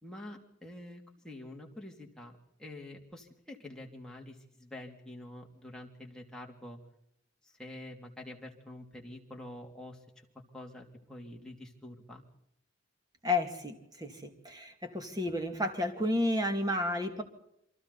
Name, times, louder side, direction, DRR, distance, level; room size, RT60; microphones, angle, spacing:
voice 1, 0.0-2.3 2.6-6.8 7.4-10.2 10.5-12.2, left 1 dB, 5° left, -1 dB, 2.9 m, -47 dB
voice 2, 13.2-17.2, left 1 dB, 20° right, 6 dB, 2.4 m, -32 dB
28.5 x 23.5 x 4.2 m, 0.75 s
head